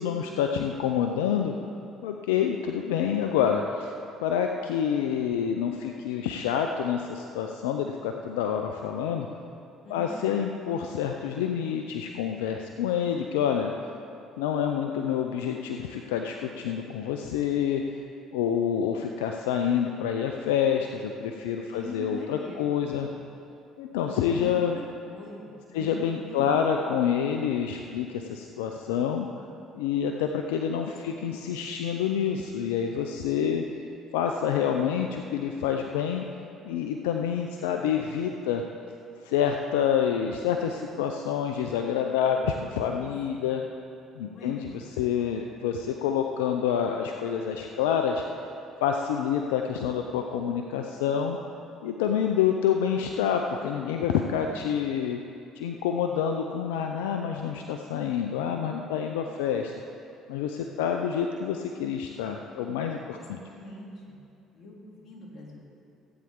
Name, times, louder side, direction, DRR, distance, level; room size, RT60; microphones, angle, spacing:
voice 1, 0.0-1.5 2.0-3.9 4.2-9.3 9.9-13.7 14.4-17.8 18.3-23.1 23.8-24.7 25.7-29.3 29.7-33.6 34.1-36.2 36.6-38.6 39.2-43.6 44.2-48.2 48.8-51.4 51.8-55.2 55.6-59.7 60.3-63.4, left 8 dB, 85° left, 4 dB, 0.5 m, -27 dB
voice 2, 9.8-10.2 21.7-22.9 24.2-24.8 25.1-26.5 30.7-31.3 42.9-43.6 44.2-44.6 63.3-64.2 64.5-65.7, left 2 dB, 50° left, -3 dB, 2.9 m, -43 dB
16.0 x 8.9 x 3.7 m, 2.6 s
hypercardioid pair, 65°, 0 cm